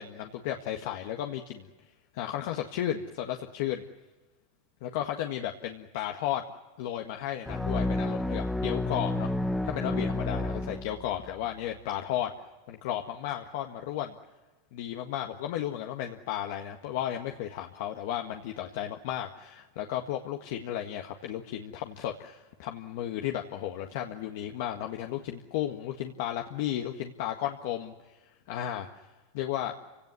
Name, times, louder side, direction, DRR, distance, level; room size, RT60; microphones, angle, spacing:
voice 1, 0.0-1.7 2.1-3.8 4.8-6.4 6.8-9.3 9.6-12.3 12.7-14.1 14.7-28.2 28.5-29.0 29.3-29.7, left 11 dB, 65° left, 3 dB, 1.7 m, -34 dB
sound 1, 7.5-11.3, left 2 dB, 5° left, 1.3 m, -30 dB
28.0 x 17.5 x 9.5 m, 1.2 s
hypercardioid pair, 115°, 0 cm